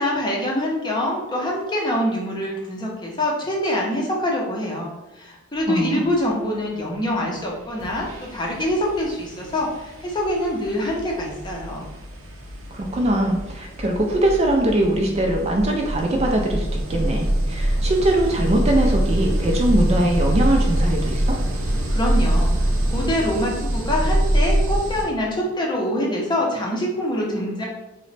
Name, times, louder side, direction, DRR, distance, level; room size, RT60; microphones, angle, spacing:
voice 1, 0.0-11.9 21.9-27.6, left 1 dB, 20° left, -2 dB, 0.6 m, -25 dB
voice 2, 5.7-6.1 12.7-21.4, right 1 dB, 30° right, 1 dB, 0.4 m, -21 dB
sound 1, 7.3-7.4 7.8-25.1, right 1 dB, 75° right, 0.6 m, -24 dB
3.0 x 2.1 x 4.0 m, 0.99 s
head